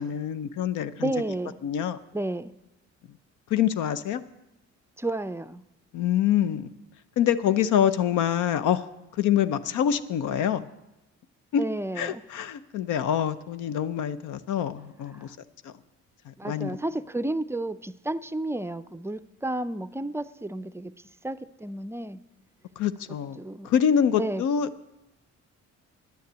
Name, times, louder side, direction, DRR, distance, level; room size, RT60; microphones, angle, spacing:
voice 1, 0.0-1.1 1.6-2.0 3.5-4.2 5.9-6.7 7.2-8.8 9.1-10.7 11.5-11.6 12.0-15.4 15.6-15.7 16.3-16.8 22.8-23.4 23.6-24.9, left 9 dB, 80° left, 12 dB, 0.7 m, -25 dB
voice 2, 1.0-1.6 2.1-2.5 5.0-5.6 11.6-12.2 15.1-15.3 16.4-20.9 21.2-22.2 23.4-23.7 24.2-24.4, right 2 dB, 10° right, 14 dB, 0.4 m, -31 dB
10.5 x 9.5 x 8.1 m, 0.98 s
cardioid pair, 90°, 30 cm